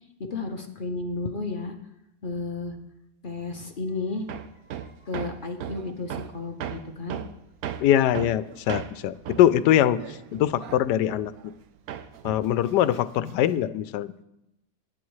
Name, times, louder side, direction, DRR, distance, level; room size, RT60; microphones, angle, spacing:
voice 1, 0.3-1.7 2.2-2.8 3.2-4.3 4.7-7.2, left 3 dB, 40° left, 4 dB, 0.8 m, -33 dB
Hammer, 4.3-11.6 11.9-13.6, right 9 dB, 70° right, 1.1 m, -37 dB
voice 2, 7.8-11.5 12.2-14.1, left 11 dB, 85° left, 15 dB, 1.2 m, -23 dB
18.5 x 9.7 x 3.2 m, 0.85 s
omnidirectional pair, 1.8 m